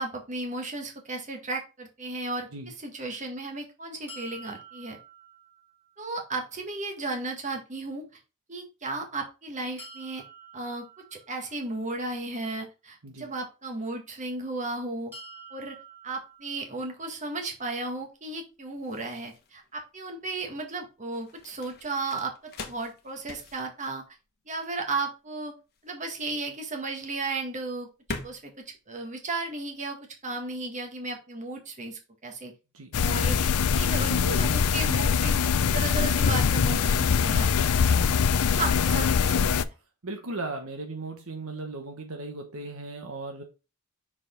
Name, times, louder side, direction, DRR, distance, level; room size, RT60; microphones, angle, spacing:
voice 1, 0.0-5.0 6.0-8.0 8.5-10.2 10.5-15.1 15.5-15.8 16.0-24.0 24.4-25.5 25.8-27.9 28.2-30.0 30.2-32.5 33.0-33.4 33.7-35.4 35.7-37.8 38.6-39.5, right 3 dB, 35° right, 1.7 m, -34 dB
sound 1, 4.1-6.0 9.8-11.8 15.1-17.1, right 3 dB, 10° right, 2.6 m, -48 dB
sound 2, 16.1-29.9, left 3 dB, 45° left, 1.2 m, -45 dB
sound 3, 32.9-39.6, left 6 dB, 85° left, 0.5 m, -23 dB
voice 2, 40.0-43.4, right 2 dB, 65° right, 1.2 m, -37 dB
6.2 x 4.8 x 3.8 m
head